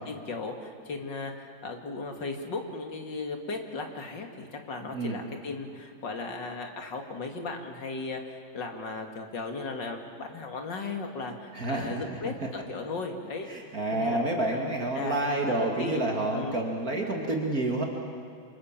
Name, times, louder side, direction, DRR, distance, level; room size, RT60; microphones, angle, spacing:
voice 1, 0.1-12.3 12.7-13.5 13.9-14.2 14.5-16.0 16.3-16.5, left 3 dB, 60° left, 4 dB, 3.0 m, -36 dB
voice 2, 11.5-12.2 13.4-17.8, right 2 dB, 45° right, 0 dB, 2.8 m, -29 dB
28.5 x 26.0 x 7.5 m, 2.3 s
omnidirectional pair, 2.2 m